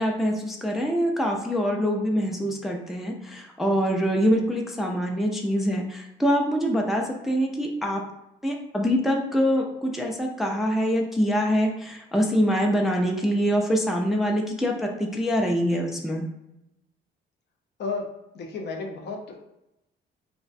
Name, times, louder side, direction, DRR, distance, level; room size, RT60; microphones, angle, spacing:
voice 1, 0.0-8.0 8.4-16.3, equal, ahead, 1 dB, 0.3 m, -24 dB
voice 2, 18.3-19.5, left 4 dB, 60° left, 3 dB, 0.5 m, -32 dB
2.3 x 2.1 x 2.5 m, 0.87 s
cardioid pair, 90°, 20 cm